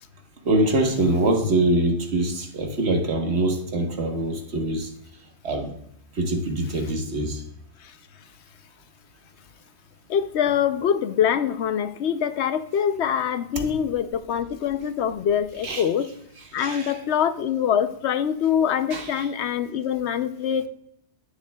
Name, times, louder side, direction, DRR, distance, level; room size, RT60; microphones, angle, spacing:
voice 1, 0.4-4.9 5.4-5.7 6.2-7.4 13.6-13.7 15.6-15.8 16.6-17.0 18.9-19.2, right 1 dB, 75° right, 3 dB, 1.5 m, -24 dB
voice 2, 10.1-16.1 16.5-20.7, left 8 dB, 75° left, 11 dB, 0.9 m, -24 dB
10.0 x 9.7 x 2.3 m, 0.72 s
omnidirectional pair, 1.1 m